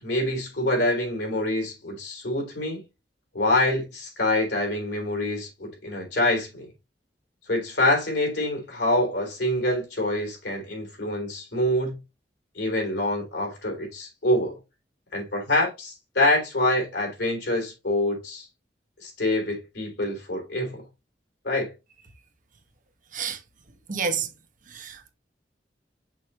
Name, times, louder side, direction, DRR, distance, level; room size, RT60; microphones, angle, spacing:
voice 1, 0.0-2.8 3.3-6.7 7.5-12.0 12.6-14.6 15.1-18.5 19.0-20.8 21.4-21.7, left 1 dB, 80° left, 3.4 m, -26 dB
voice 2, 23.9-24.3 24.7-25.1, right 6 dB, 50° right, 1.0 m, -29 dB
6.2 x 5.5 x 2.8 m
head